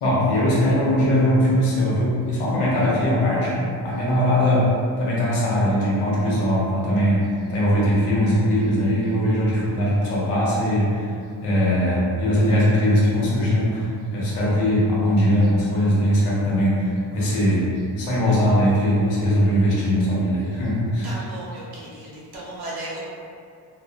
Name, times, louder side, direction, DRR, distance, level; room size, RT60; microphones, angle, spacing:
voice 1, 0.0-4.7 5.0-11.1 11.4-17.7 18.0-21.2, equal, 85° left, -6 dB, 0.9 m, -20 dB
voice 2, 21.0-23.0, right 1 dB, 50° right, -5 dB, 0.8 m, -35 dB
2.3 x 2.1 x 2.4 m, 2.3 s
supercardioid pair, 70°, 50 cm